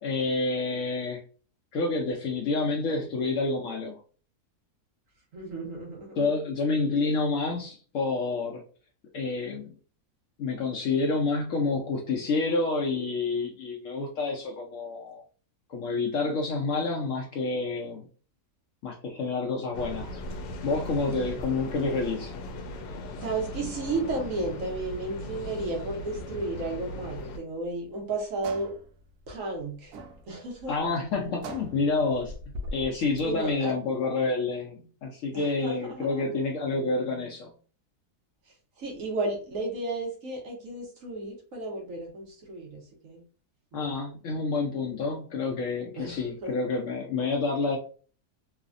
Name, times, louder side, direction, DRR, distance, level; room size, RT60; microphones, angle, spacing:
voice 1, 0.0-1.2 1.7-4.0 6.2-8.6 9.1-9.7 10.4-15.2 15.7-18.0 18.8-20.2 20.6-22.3 30.7-32.3 32.7-37.5 43.7-47.8, left 3 dB, 70° left, 0.8 m, -28 dB
voice 2, 5.3-6.3 23.2-28.7 29.3-29.9 30.3-30.7 33.2-33.7 35.3-36.2 38.8-43.2 43.7-43.9 46.0-46.6, right 2 dB, 60° right, 1.1 m, -33 dB
sound 1, 19.7-27.4, left 1 dB, 90° left, 1.2 m, -38 dB
sound 2, 27.4-33.6, equal, 75° right, 1.1 m, -42 dB
3.2 x 2.0 x 2.5 m
omnidirectional pair, 1.7 m